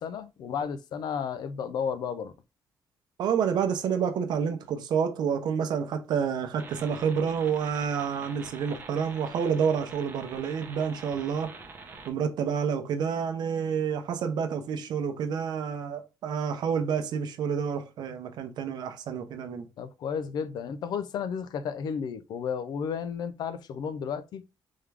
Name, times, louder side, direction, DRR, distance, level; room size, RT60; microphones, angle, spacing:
voice 1, 0.0-2.3 19.8-24.4, left 7 dB, 65° left, 0.5 m, -33 dB
voice 2, 3.2-11.5 12.1-19.7, right 7 dB, 65° right, 0.7 m, -29 dB
sound 1, 6.6-12.1, right 4 dB, 25° right, 0.7 m, -46 dB
3.6 x 3.4 x 3.3 m
cardioid pair, 175°, 8 cm